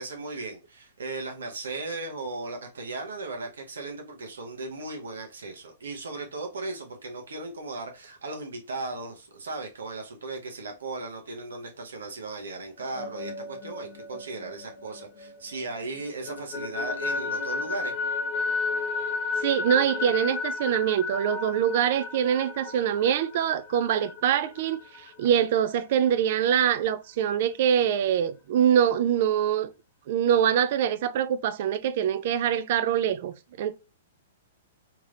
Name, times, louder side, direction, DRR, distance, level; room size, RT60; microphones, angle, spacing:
voice 1, 0.0-17.9, right 3 dB, 75° right, 0.9 m, -37 dB
sound 1, 12.8-15.6 16.0-25.4, left 4 dB, 25° left, 1.4 m, -33 dB
voice 2, 19.4-24.8 25.2-29.7 30.1-33.7, right 9 dB, 55° right, 0.3 m, -24 dB
3.1 x 2.9 x 2.5 m
hypercardioid pair, 115°, 0 cm